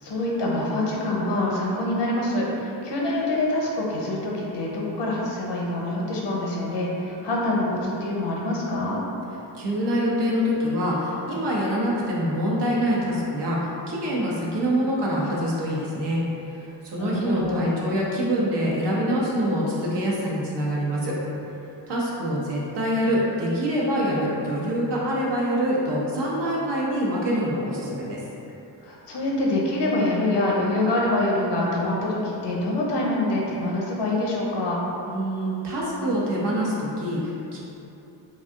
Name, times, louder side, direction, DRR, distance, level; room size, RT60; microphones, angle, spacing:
voice 1, 0.0-9.0 17.0-17.8 28.8-34.8, left 1 dB, 70° left, -3 dB, 0.7 m, -25 dB
voice 2, 9.5-16.2 16.5-21.1 21.9-28.2 35.1-37.6, equal, 65° right, -5 dB, 0.8 m, -25 dB
2.7 x 2.3 x 3.4 m, 2.9 s
cardioid pair, 85°, 44 cm